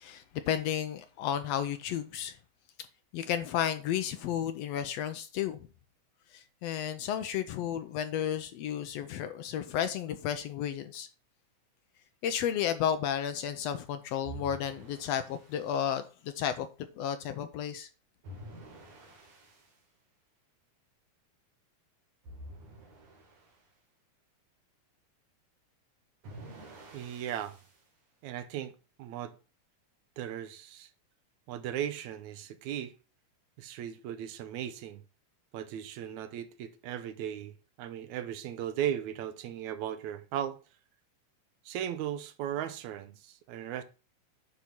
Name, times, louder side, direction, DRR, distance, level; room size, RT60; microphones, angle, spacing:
voice 1, 0.0-2.4 3.1-5.7 6.3-11.1 12.2-16.7 17.0-17.9, left 9 dB, 75° left, 1.5 m, -32 dB
sound 1, 14.2-15.7 18.2-19.7 22.2-23.6 26.2-27.8, right 1 dB, 60° right, 3.6 m, -48 dB
voice 2, 26.9-27.6 28.2-28.7 29.0-29.4 30.2-30.9 31.5-32.9 33.6-35.0 35.5-40.6 41.7-43.8, right 10 dB, 80° right, 2.1 m, -37 dB
10.0 x 4.2 x 5.9 m
omnidirectional pair, 3.4 m